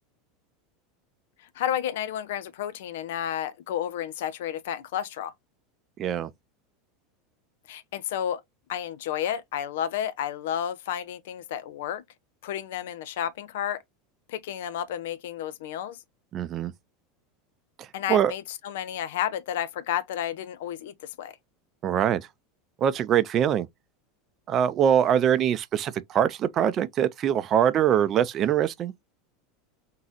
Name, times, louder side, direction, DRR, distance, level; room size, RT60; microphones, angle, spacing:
voice 1, 1.6-5.3 7.7-8.4 8.7-12.0 12.4-13.8 14.3-16.0 17.9-21.3, left 10 dB, 65° left, 0.5 m, -31 dB
voice 2, 6.0-6.3 16.3-16.7 17.8-18.3 21.8-22.3 22.8-23.7 24.5-28.9, right 9 dB, 35° right, 0.5 m, -23 dB
3.9 x 3.7 x 2.9 m
figure-of-eight pair, 80°, 0 cm